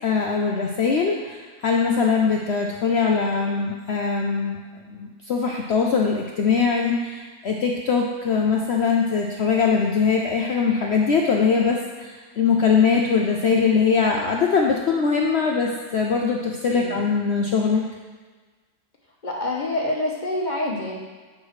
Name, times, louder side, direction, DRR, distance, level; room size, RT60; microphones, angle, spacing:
voice 1, 0.0-4.6 4.9-17.8, left 5 dB, 70° left, 0 dB, 0.6 m, -22 dB
voice 2, 19.2-21.0, left 1 dB, 35° left, -2 dB, 0.9 m, -26 dB
8.6 x 6.0 x 3.2 m, 1.4 s
omnidirectional pair, 1.7 m